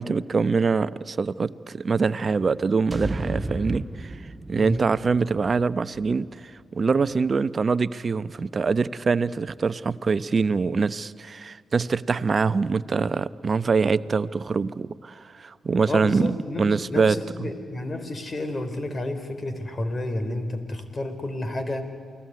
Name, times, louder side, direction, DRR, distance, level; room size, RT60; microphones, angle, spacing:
voice 1, 0.0-4.2 4.5-17.5, right 4 dB, 50° right, 15 dB, 0.8 m, -24 dB
sound 1, 2.9-7.1, right 1 dB, 25° right, 1.4 m, -35 dB
voice 2, 15.9-21.8, left 2 dB, 40° left, 9 dB, 4.1 m, -31 dB
28.5 x 19.0 x 9.6 m, 2.2 s
hypercardioid pair, 45°, 0 cm